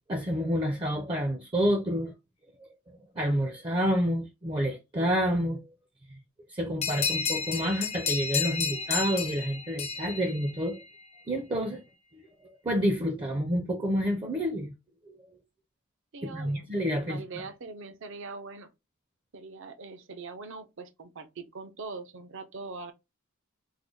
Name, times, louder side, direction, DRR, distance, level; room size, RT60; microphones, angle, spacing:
voice 1, 0.1-2.1 3.2-5.6 6.5-10.8 11.3-11.8 12.6-14.7 15.1-15.2 16.2-17.2, equal, 25° right, 0.5 m, -28 dB
sound 1, 6.8-11.1, left 6 dB, 30° left, 0.5 m, -32 dB
voice 2, 16.1-18.7 19.3-22.9, right 4 dB, 65° right, 0.6 m, -42 dB
3.7 x 2.2 x 3.1 m
head